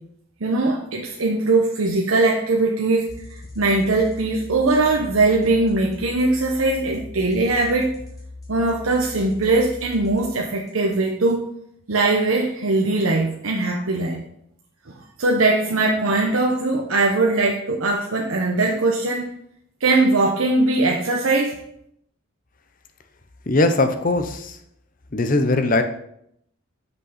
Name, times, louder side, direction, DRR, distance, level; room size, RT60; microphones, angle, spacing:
voice 1, 0.4-8.0 8.5-11.4 11.9-14.2 14.9-19.3 19.8-21.6, right 2 dB, 85° right, 0 dB, 0.9 m, -20 dB
sound 1, 3.1-10.9, left 2 dB, 20° left, 1.6 m, -39 dB
voice 2, 23.5-24.6 25.1-25.8, left 2 dB, 40° left, 8 dB, 0.7 m, -20 dB
6.3 x 5.3 x 5.7 m, 0.74 s
head